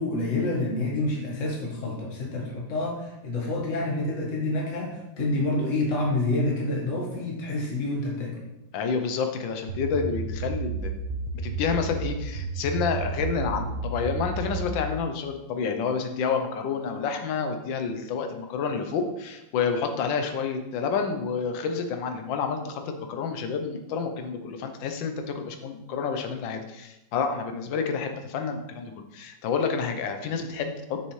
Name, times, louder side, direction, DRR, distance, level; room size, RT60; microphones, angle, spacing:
voice 1, 0.0-8.4, left 2 dB, 40° left, -3 dB, 1.7 m, -28 dB
voice 2, 8.7-11.0 11.4-31.1, left 5 dB, 75° left, 6 dB, 1.5 m, -29 dB
sound 1, 9.7-14.9, right 4 dB, 60° right, 0.7 m, -32 dB
7.1 x 6.5 x 3.2 m, 0.93 s
omnidirectional pair, 2.1 m